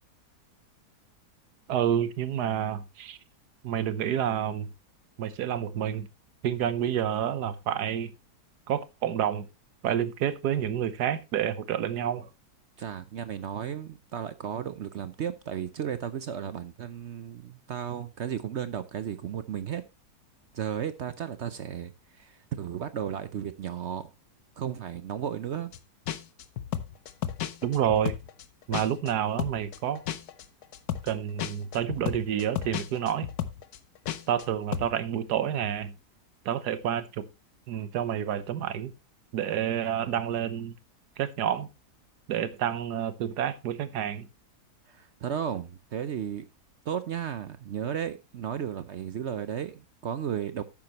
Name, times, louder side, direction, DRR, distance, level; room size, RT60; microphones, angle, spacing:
voice 1, 1.7-3.2 3.6-4.7 5.2-6.1 6.4-8.1 8.7-9.5 9.8-12.3 27.6-28.1 28.7-30.0 31.0-33.3 34.3-36.0 36.4-37.3 37.7-38.9 39.3-40.7 41.2-41.7 42.3-44.3, right 9 dB, 80° right, 1.4 m, -29 dB
voice 2, 12.8-19.8 20.5-21.9 22.2-24.1 24.6-25.7 44.9-46.5 46.9-50.6, right 9 dB, 60° right, 0.7 m, -34 dB
sound 1, 25.7-25.8 26.1-29.1 29.4-34.5 34.7-34.9, left 10 dB, 70° left, 1.3 m, -33 dB
11.5 x 8.9 x 3.0 m
omnidirectional pair, 1.7 m